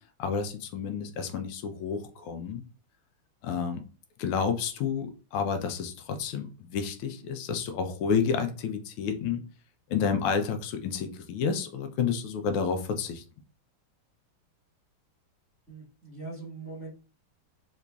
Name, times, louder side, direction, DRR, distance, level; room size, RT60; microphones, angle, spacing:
voice 1, 0.2-2.6 3.4-3.8 4.2-9.4 9.9-13.2, left 6 dB, 85° left, 7 dB, 1.5 m, -30 dB
voice 2, 15.7-16.9, right 3 dB, 10° right, -8 dB, 1.1 m, -41 dB
3.9 x 3.0 x 2.3 m, 0.36 s
omnidirectional pair, 2.3 m